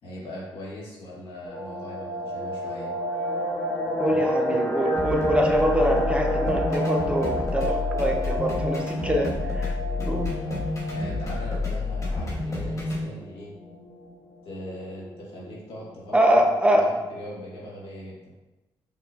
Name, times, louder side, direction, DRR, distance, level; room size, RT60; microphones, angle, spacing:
voice 1, 0.0-2.9 4.0-4.6 10.9-13.5 14.4-18.3, equal, 70° left, -5 dB, 1.5 m, -40 dB
sound 1, 1.5-12.3 12.5-12.6 13.0-13.2 13.6-14.1 14.6-14.7 14.8-15.4 15.7-15.8, equal, 15° left, 1.2 m, -29 dB
voice 2, 4.0-9.7 10.0-10.3 16.1-16.9, equal, 10° right, 2 dB, 0.7 m, -24 dB
sound 2, 5.0-13.0, left 2 dB, 35° left, 1.5 m, -29 dB
5.5 x 2.9 x 2.4 m, 1.1 s
cardioid pair, 75°, 10 cm